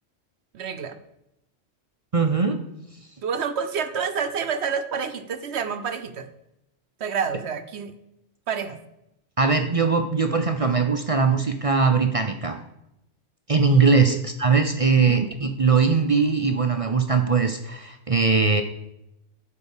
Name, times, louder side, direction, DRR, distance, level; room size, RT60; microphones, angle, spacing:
voice 1, 0.5-1.0 3.2-6.3 7.0-7.9 8.5-8.8 14.1-14.2 15.1-15.2, right 6 dB, 65° right, 10 dB, 0.9 m, -28 dB
voice 2, 2.1-2.6 9.4-12.6 13.5-18.6, right 5 dB, 40° right, 6 dB, 0.5 m, -20 dB
11.0 x 4.7 x 7.1 m, 0.86 s
omnidirectional pair, 1.3 m